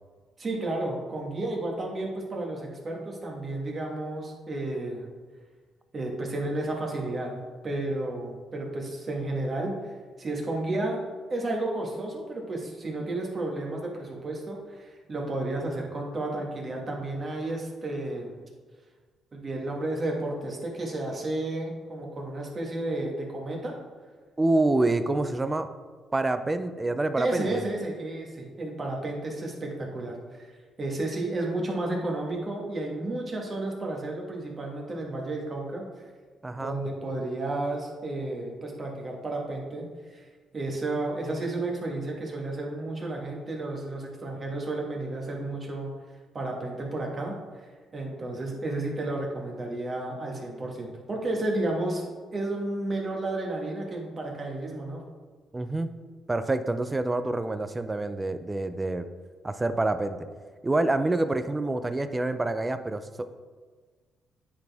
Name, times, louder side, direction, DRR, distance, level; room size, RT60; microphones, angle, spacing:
voice 1, 0.4-5.1 5.9-9.9 10.2-11.0 11.3-18.4 19.3-23.7 27.2-30.5 30.8-35.9 36.5-40.3 40.5-45.9 46.3-47.3 47.9-55.0, right 2 dB, 35° right, 0 dB, 1.6 m, -32 dB
voice 2, 24.4-25.7 26.1-27.6 36.4-36.8 55.5-55.9 56.3-59.0 59.4-60.2 60.6-63.0, right 2 dB, 20° right, 10 dB, 0.5 m, -27 dB
9.6 x 4.2 x 3.5 m, 1.4 s
cardioid pair, 90°, 0 cm